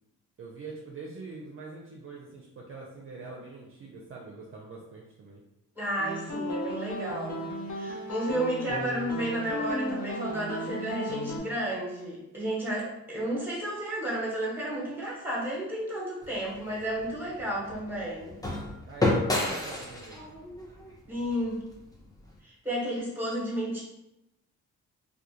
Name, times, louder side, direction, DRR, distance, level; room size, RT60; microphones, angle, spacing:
voice 1, 0.4-5.4 18.9-20.3, right 3 dB, 45° right, -3 dB, 0.5 m, -44 dB
voice 2, 5.7-18.4 21.1-21.6 22.4-23.8, right 1 dB, 5° right, -5 dB, 1.1 m, -32 dB
sound 1, 6.0-11.4, equal, 65° left, 0.6 m, -35 dB
sound 2, 16.2-22.3, left 2 dB, 10° left, 0.6 m, -32 dB
2.3 x 2.3 x 2.8 m, 0.89 s
cardioid pair, 75°, 31 cm